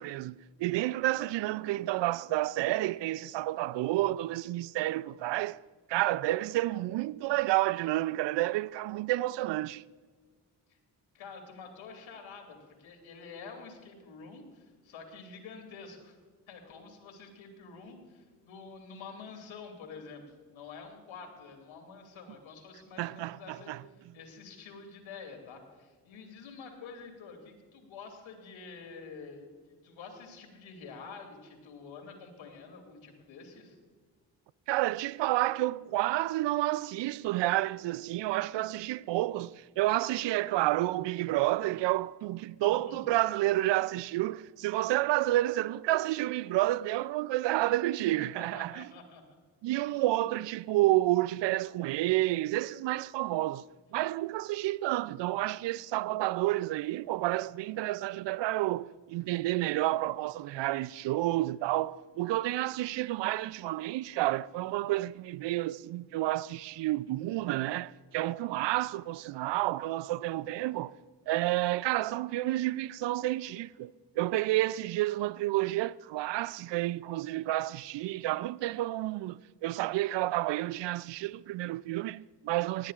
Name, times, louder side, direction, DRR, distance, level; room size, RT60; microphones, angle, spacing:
voice 1, 0.0-5.6 5.9-9.8 23.0-23.8 34.7-48.9 49.6-53.6 53.9-70.9 71.3-82.9, right 16 dB, 65° right, 0.5 m, -30 dB
voice 2, 11.1-16.2 16.5-20.2 20.5-33.8 42.6-42.9 48.2-49.2 49.9-50.0, left 5 dB, 75° left, 2.8 m, -48 dB
19.0 x 13.0 x 2.4 m
hypercardioid pair, 45°, 47 cm